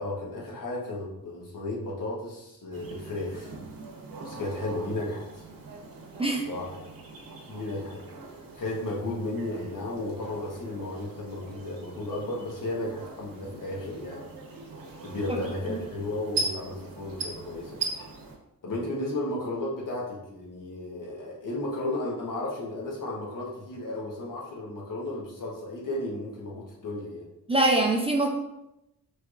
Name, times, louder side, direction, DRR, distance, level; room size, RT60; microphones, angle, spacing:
voice 1, 0.0-3.5 4.2-5.4 6.5-6.8 7.5-8.0 8.5-14.2 15.0-17.8 18.6-27.3, left 2 dB, 65° left, -3 dB, 1.1 m, -34 dB
sound 1, 2.7-18.3, right 3 dB, 80° right, 0.9 m, -40 dB
voice 2, 27.5-28.3, right 2 dB, 15° right, 0 dB, 0.4 m, -23 dB
4.5 x 3.1 x 2.4 m, 0.88 s
wide cardioid pair, 165°, 34 cm